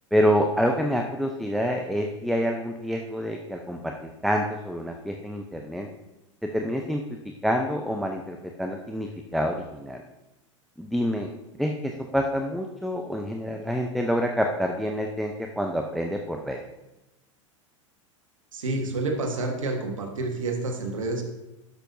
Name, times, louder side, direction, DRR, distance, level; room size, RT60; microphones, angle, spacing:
voice 1, 0.1-5.9 6.4-7.0 7.4-10.0 10.8-11.3 11.6-16.6, equal, ahead, 3 dB, 0.6 m, -27 dB
voice 2, 18.5-21.2, right 2 dB, 85° right, 3 dB, 1.4 m, -29 dB
12.0 x 6.8 x 2.7 m, 0.97 s
hypercardioid pair, 90°, 16 cm